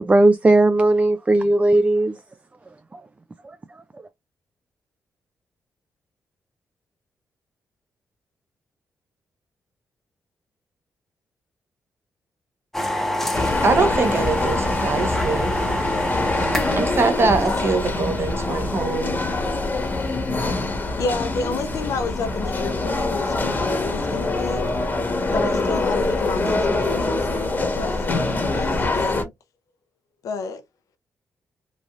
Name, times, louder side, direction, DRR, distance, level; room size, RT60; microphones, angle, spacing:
voice 1, 0.0-2.1, right 2 dB, 25° right, 0.3 m, -17 dB
sound 1, 12.7-20.2, left 1 dB, 5° left, 0.8 m, -28 dB
sound 2, 13.3-29.2, left 2 dB, 35° left, 1.1 m, -24 dB
voice 2, 13.6-15.6 16.7-19.3, right 4 dB, 45° right, 0.9 m, -23 dB
voice 3, 20.7-24.6 25.3-29.3 30.2-30.6, left 4 dB, 75° left, 0.5 m, -30 dB
3.1 x 2.5 x 2.3 m
cardioid pair, 60°, 6 cm